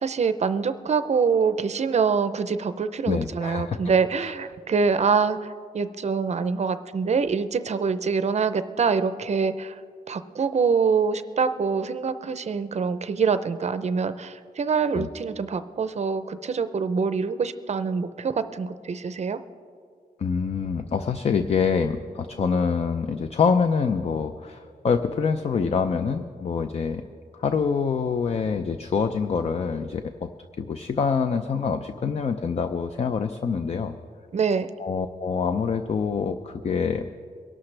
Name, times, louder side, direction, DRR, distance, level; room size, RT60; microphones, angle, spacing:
voice 1, 0.0-9.8 10.1-19.4 34.3-34.7, right 5 dB, 45° right, 12 dB, 0.5 m, -25 dB
voice 2, 3.1-3.8 4.2-4.3 14.9-15.1 20.2-27.0 27.3-30.3 30.6-33.9 34.8-37.1, left 5 dB, 40° left, 8 dB, 0.5 m, -25 dB
23.0 x 12.0 x 3.3 m, 2.2 s
wide cardioid pair, 145°, 16 cm